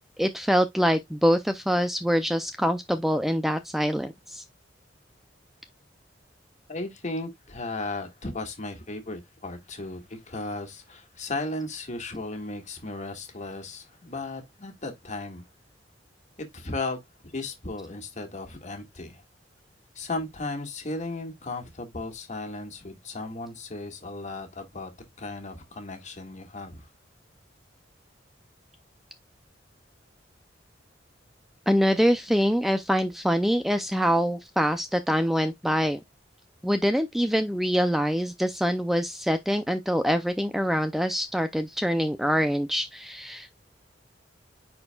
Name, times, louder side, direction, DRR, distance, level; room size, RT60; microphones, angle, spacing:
voice 1, 0.2-4.4 31.7-36.0 36.6-43.6, equal, ahead, 0.4 m, -25 dB
voice 2, 6.7-15.5 16.4-17.0 17.3-19.2 20.0-24.9 25.2-26.9, left 2 dB, 40° left, 1.7 m, -35 dB
9.7 x 4.4 x 2.3 m
head